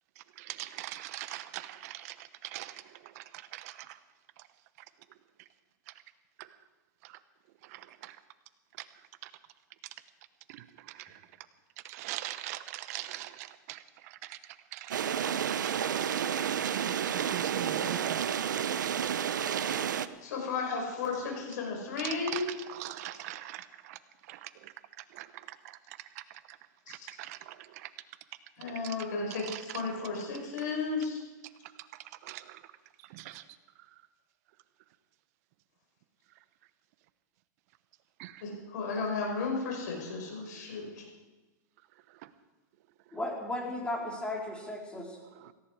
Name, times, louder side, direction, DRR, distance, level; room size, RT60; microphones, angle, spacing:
voice 1, 0.2-4.0 6.4-6.5 7.0-7.2 7.6-8.2 8.8-8.9 9.2-9.3 10.5-11.2 11.8-18.3 22.0-24.0 24.3-24.7 25.1-26.6 26.9-27.9 28.8-28.9 29.5-29.8 31.9-32.6 33.1-33.4 38.2-38.4 45.4-45.5, right 15 dB, 55° right, 13 dB, 1.0 m, -43 dB
sound 1, 14.9-20.1, right 8 dB, 90° right, 0.7 m, -30 dB
voice 2, 20.2-22.5 28.6-31.2 38.4-41.1, left 4 dB, 70° left, 0 dB, 5.7 m, -34 dB
voice 3, 43.1-45.2, left 1 dB, 10° left, -1 dB, 3.8 m, -35 dB
17.5 x 14.5 x 4.9 m, 1.1 s
hypercardioid pair, 125°, 10 cm